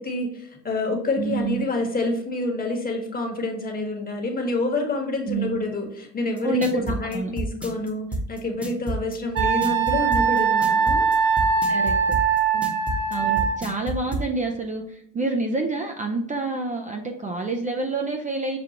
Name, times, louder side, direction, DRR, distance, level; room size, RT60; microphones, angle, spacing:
voice 1, 0.0-11.3 12.5-12.7, left 2 dB, 25° left, 1 dB, 1.3 m, -28 dB
voice 2, 1.2-1.6 5.3-5.6 6.4-7.3 11.7-11.9 13.1-18.6, right 3 dB, 20° right, 2 dB, 0.5 m, -27 dB
sound 1, 6.4-14.3, right 1 dB, 5° right, 1.0 m, -29 dB
Wind instrument woodwind instrument, 9.3-13.6, right 6 dB, 60° right, 1.4 m, -21 dB
6.8 x 2.4 x 2.9 m, 0.78 s
supercardioid pair, 95°, 35 cm